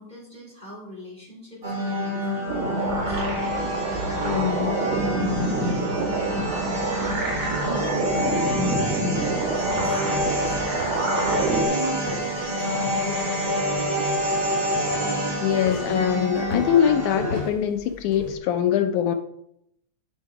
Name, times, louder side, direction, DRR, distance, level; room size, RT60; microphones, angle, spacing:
voice 1, 0.0-3.2 3.9-4.6 5.2-6.7 7.2-10.9 11.5-13.9, right 1 dB, 15° right, -4 dB, 2.5 m, -40 dB
sound 1, 1.6-17.5, equal, 30° right, 4.1 m, -27 dB
sound 2, 2.5-11.6, right 2 dB, 75° right, 3.5 m, -27 dB
voice 2, 4.2-4.7 7.7-8.0 15.4-19.1, left 9 dB, 80° left, 7 dB, 2.1 m, -23 dB
sound 3, 11.6-18.4, left 5 dB, 50° left, 3.5 m, -37 dB
10.0 x 6.5 x 4.7 m, 0.75 s
omnidirectional pair, 3.5 m